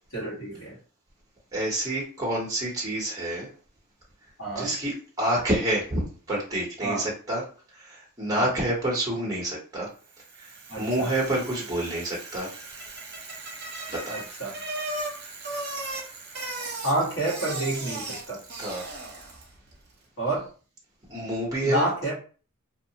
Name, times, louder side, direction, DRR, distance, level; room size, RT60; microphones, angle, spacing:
voice 1, 0.1-0.7 4.4-4.7 6.8-7.0 8.3-8.5 10.7-11.1 14.1-14.6 16.8-18.4 20.2-20.5 21.6-22.2, right 2 dB, 60° left, -5 dB, 1.4 m, -29 dB
voice 2, 1.5-3.5 4.5-7.4 7.7-9.9 10.4-12.5 13.9-14.2 18.5-18.9 21.1-21.8, right 1 dB, 15° right, -4 dB, 0.8 m, -28 dB
Bicycle, 10.1-19.6, right 2 dB, 50° right, 0.7 m, -37 dB
2.7 x 2.0 x 2.7 m, 0.40 s
head